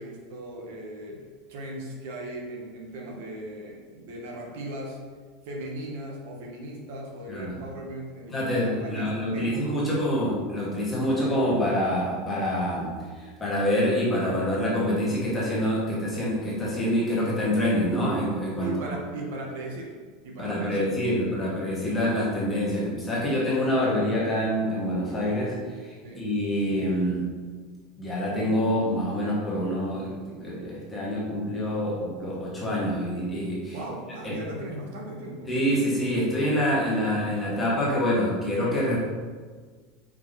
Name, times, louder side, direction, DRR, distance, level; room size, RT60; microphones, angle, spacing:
voice 1, 0.0-5.0 5.4-10.2 18.6-19.9 20.2-21.5 26.0-26.3 33.7-35.5, right 1 dB, 70° right, 0 dB, 0.9 m, -38 dB
voice 2, 8.3-18.7 20.4-27.2 28.0-30.2 30.4-33.8 34.2-34.4 35.5-39.0, equal, 10° left, -7 dB, 1.1 m, -26 dB
4.8 x 2.7 x 3.9 m, 1.5 s
supercardioid pair, 175°, 0 cm